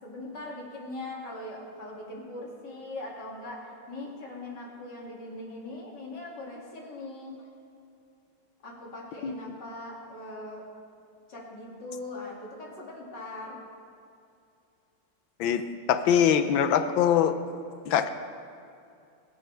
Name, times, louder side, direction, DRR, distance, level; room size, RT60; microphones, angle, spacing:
voice 1, 0.0-7.3 8.6-10.6 11.3-13.6, left 2 dB, 60° left, -3 dB, 3.2 m, -40 dB
voice 2, 15.9-17.3 17.9-18.1, left 9 dB, 80° left, 10 dB, 1.5 m, -22 dB
23.5 x 11.0 x 3.4 m, 2.5 s
omnidirectional pair, 2.1 m